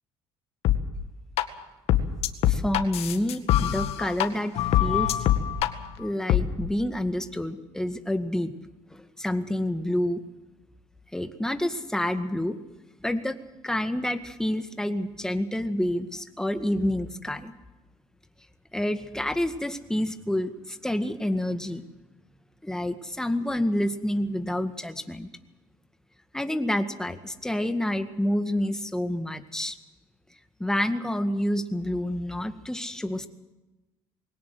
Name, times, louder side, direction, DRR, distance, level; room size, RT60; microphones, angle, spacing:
sound 1, 0.6-0.8 1.4-1.5 1.9-4.3 4.6-5.7 6.3-6.4, left 12 dB, 65° left, 2.0 m, -23 dB
voice 1, 2.5-5.3 6.0-8.5 8.9-10.2 11.1-12.6 13.0-13.4 13.6-17.5 18.7-21.8 22.6-25.3 26.3-29.8 30.6-33.3, left 1 dB, 5° left, 8 dB, 2.0 m, -28 dB
22.0 x 18.0 x 7.9 m, 1.0 s
cardioid pair, 100°, 11 cm